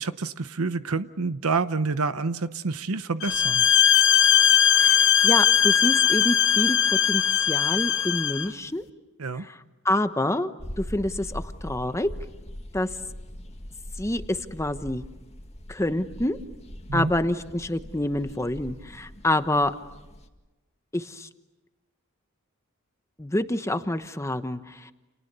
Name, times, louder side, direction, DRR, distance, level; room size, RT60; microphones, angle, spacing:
voice 1, 0.0-3.7 9.2-9.5 16.9-17.1, right 4 dB, 85° right, 12 dB, 0.9 m, -28 dB
sound 1, 3.2-8.5, left 9 dB, 60° left, 1.0 m, -20 dB
voice 2, 4.8-6.8 7.1-8.8 9.5-9.6 9.8-12.1 12.7-12.9 14.0-15.0 15.7-16.4 16.9-19.7 20.9-21.3 23.2-24.9, left 1 dB, 15° left, 10 dB, 1.1 m, -27 dB
sound 2, 10.6-20.3, equal, 30° left, 2.1 m, -41 dB
29.5 x 29.0 x 6.9 m, 1.1 s
head